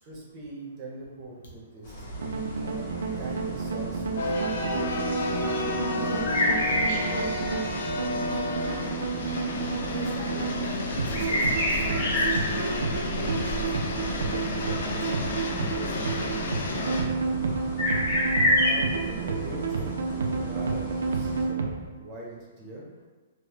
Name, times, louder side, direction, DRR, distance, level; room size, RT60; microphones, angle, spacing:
voice 1, 0.0-2.1 2.6-2.9 3.2-4.8 18.4-22.9, right 2 dB, 25° right, -3 dB, 0.5 m, -42 dB
sound 1, 1.8-21.4, left 1 dB, 40° left, 0.8 m, -31 dB
sound 2, 2.2-21.9, right 5 dB, 90° right, 0.3 m, -31 dB
sound 3, 4.2-17.0, left 3 dB, 55° left, 0.4 m, -32 dB
voice 2, 5.6-6.5 7.1-7.3 8.4-8.7 9.9-13.7 14.0-17.0, left 1 dB, 80° left, -4 dB, 0.9 m, -40 dB
3.1 x 2.0 x 2.8 m, 1.3 s
hypercardioid pair, 175°, 0 cm